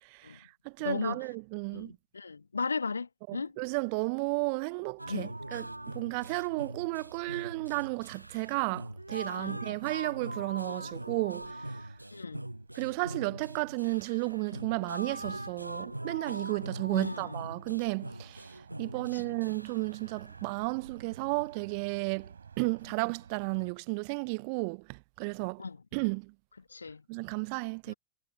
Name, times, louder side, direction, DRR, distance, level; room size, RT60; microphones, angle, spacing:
voice 1, 0.1-1.9 3.3-11.6 12.8-25.6 25.9-26.3 27.1-27.9, right 34 dB, 45° right, 0.4 m, -33 dB
voice 2, 0.8-1.3 1.7-3.5 5.1-5.3 9.4-9.6 12.1-12.4 16.9-17.4 19.1-19.4 25.6-25.8 26.7-27.0 27.9-28.0, left 4 dB, 75° left, 1.7 m, -36 dB
sound 1, 5.0-23.7, right 6 dB, 70° right, 5.0 m, -56 dB
sound 2, 5.0-20.7, right 1 dB, 85° right, 0.9 m, -42 dB
figure-of-eight pair, 90°, 0 cm